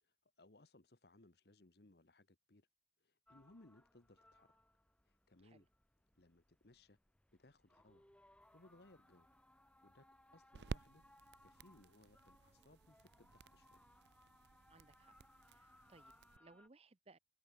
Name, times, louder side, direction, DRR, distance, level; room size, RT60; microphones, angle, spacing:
voice 1, 0.0-2.7 3.0-4.6 5.0-5.7 6.1-7.0 7.3-8.0 8.3-9.3 9.8-11.0 11.4-13.8, left 2 dB, 60° left, 1.4 m, -66 dB
sound 1, 3.3-16.7, left 1 dB, 5° left, 1.0 m, -69 dB
sound 2, 8.5-16.4, right 4 dB, 70° right, 0.5 m, -54 dB
voice 2, 14.7-15.1 15.5-17.2, right 3 dB, 35° right, 0.7 m, -65 dB
head